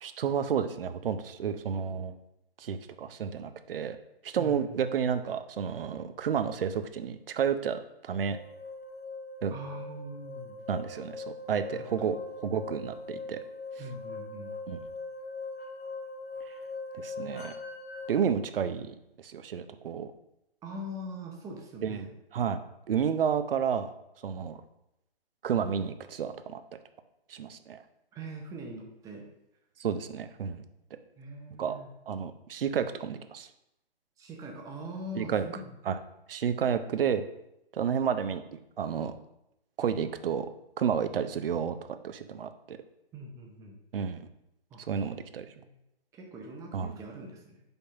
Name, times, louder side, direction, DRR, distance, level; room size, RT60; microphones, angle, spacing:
voice 1, 0.0-2.2 2.6-4.0 4.2-8.4 9.4-9.5 10.7-12.2 12.4-13.4 14.7-14.8 17.0-17.5 18.1-20.1 21.8-22.1 22.3-22.6 22.9-23.9 24.2-24.6 25.4-26.8 27.3-27.8 29.8-30.6 31.6-31.8 32.1-33.5 35.2-35.4 35.8-36.0 36.3-37.2 37.7-38.4 38.8-39.2 39.8-40.5 40.8-41.8 42.0-42.8 43.9-44.3 44.9-45.5 46.7-46.9, right 7 dB, 60° right, 10 dB, 0.7 m, -31 dB
voice 2, 4.4-4.8 9.5-10.6 11.7-12.1 13.8-14.5 20.6-22.1 28.1-29.2 31.2-31.9 34.2-35.7 43.1-43.8 44.7-44.8 45.6-45.7 46.1-47.6, right 1 dB, 10° right, 1 dB, 0.7 m, -42 dB
sound 1, 8.3-18.1, left 3 dB, 75° left, 2.4 m, -41 dB
5.3 x 4.1 x 5.8 m, 0.85 s
hypercardioid pair, 145°, 31 cm